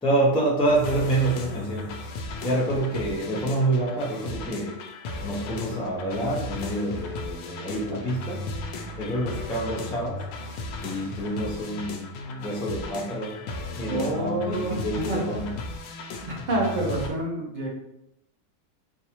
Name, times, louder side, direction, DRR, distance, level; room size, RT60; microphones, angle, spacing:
voice 1, 0.0-2.0 2.4-4.8 5.2-8.5 9.0-10.3 10.8-13.4 13.8-15.5, right 1 dB, 10° left, -5 dB, 0.3 m, -27 dB
sound 1, 0.7-17.1, left 2 dB, 90° left, 1.1 m, -36 dB
voice 2, 13.9-14.8 15.1-15.2 16.3-17.7, right 1 dB, 35° right, -3 dB, 0.8 m, -27 dB
3.8 x 2.6 x 2.9 m, 0.83 s
omnidirectional pair, 1.6 m